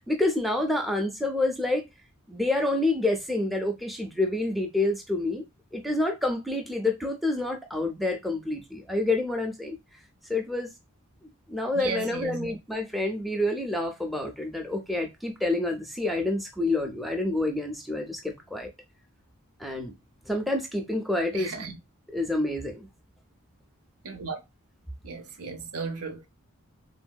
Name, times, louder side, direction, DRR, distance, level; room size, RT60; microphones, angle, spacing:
voice 1, 0.0-1.8 2.3-5.4 5.7-9.8 10.3-10.7 11.5-18.7 19.6-19.9 20.3-21.6 22.1-22.9, left 2 dB, ahead, 0.4 m, -28 dB
voice 2, 11.7-12.6 21.3-21.8 24.0-24.4 25.0-26.3, right 5 dB, 85° right, 0.6 m, -35 dB
3.3 x 2.6 x 2.2 m
head